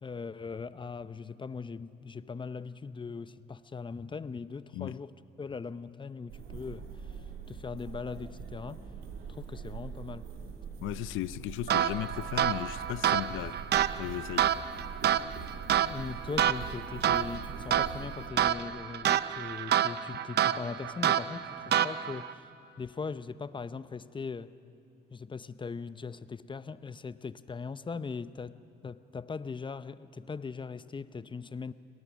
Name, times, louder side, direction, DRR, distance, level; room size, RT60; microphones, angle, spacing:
voice 1, 0.0-8.9 9.3-10.3 15.8-22.5 22.8-24.6 25.1-31.7, left 5 dB, 25° left, 0.7 m, -40 dB
sound 1, 6.3-18.3, right 6 dB, 90° right, 2.4 m, -43 dB
voice 2, 10.8-13.6 14.0-14.5, left 15 dB, 85° left, 0.5 m, -36 dB
sound 2, 11.7-22.3, right 10 dB, 55° right, 0.6 m, -29 dB
29.0 x 19.0 x 6.2 m
cardioid pair, 90°, 20 cm